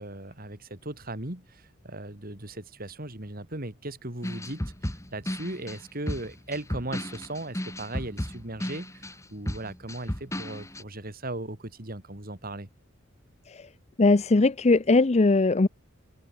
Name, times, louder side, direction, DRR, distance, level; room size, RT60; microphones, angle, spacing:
voice 1, 0.0-12.7, right 2 dB, 45° right, 3.4 m, -38 dB
sound 1, 4.2-10.8, equal, 15° left, 2.6 m, -34 dB
voice 2, 14.0-15.7, left 3 dB, 35° left, 0.6 m, -20 dB
open air
head